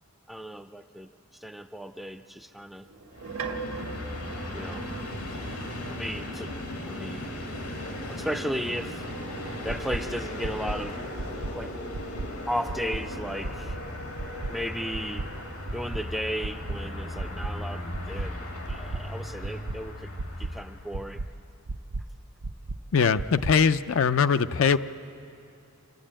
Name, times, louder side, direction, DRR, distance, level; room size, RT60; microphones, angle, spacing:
voice 1, 0.3-1.1 1.4-2.9 4.5-4.9 5.8-6.5 6.8-7.4 8.1-9.0 9.6-11.0 11.5-11.8 12.5-13.8 14.5-15.3 15.7-18.4 18.7-20.1 20.4-21.2, equal, ahead, 9 dB, 0.4 m, -35 dB
sound 1, 2.8-6.1 8.0-10.4 12.3-17.5 18.1-19.8, right 4 dB, 85° right, 1.5 m, -44 dB
Train, 3.1-21.2, left 1 dB, 85° left, 2.4 m, -37 dB
sound 2, 9.7-10.0 10.4-10.8 11.2-11.5 11.9-12.3 12.7-13.0 13.4-13.8 14.2-14.5 14.9-15.3 15.7-16.0 16.4-16.8 17.2-17.5 17.9-18.3 18.7-19.0 19.4-19.8 20.2-20.5 20.9-21.3 21.7-22.0 22.4-22.8 23.2-23.5, right 3 dB, 70° right, 0.6 m, -33 dB
voice 2, 22.9-24.8, left 6 dB, 65° left, 12 dB, 0.4 m, -21 dB
26.0 x 12.5 x 8.8 m, 2.7 s
head